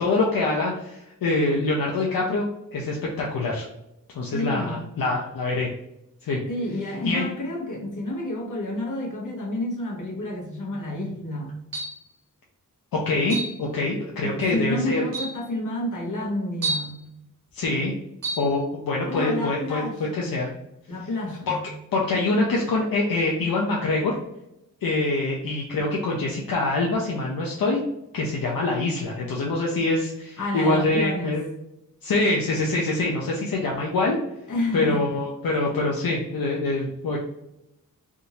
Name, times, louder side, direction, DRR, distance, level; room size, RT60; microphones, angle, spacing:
voice 1, 0.0-3.7 4.1-5.7 6.2-6.4 7.0-7.3 12.9-15.0 17.5-17.9 18.4-20.5 21.5-21.6 21.9-24.2 24.8-27.8 28.1-31.5 32.0-34.2 34.7-37.2, left 2 dB, 80° left, -2 dB, 0.7 m, -25 dB
voice 2, 4.3-4.8 6.5-11.6 14.2-17.1 19.1-20.4 20.9-21.6 30.4-31.4 34.5-35.0, left 1 dB, 60° left, -2 dB, 1.2 m, -30 dB
sound 1, 11.7-12.1 13.3-13.6 14.5-14.6 15.1-15.4 16.6-17.0 18.2-18.5, right 2 dB, 75° right, 1.1 m, -29 dB
3.6 x 2.6 x 2.9 m, 0.86 s
wide cardioid pair, 85°, 34 cm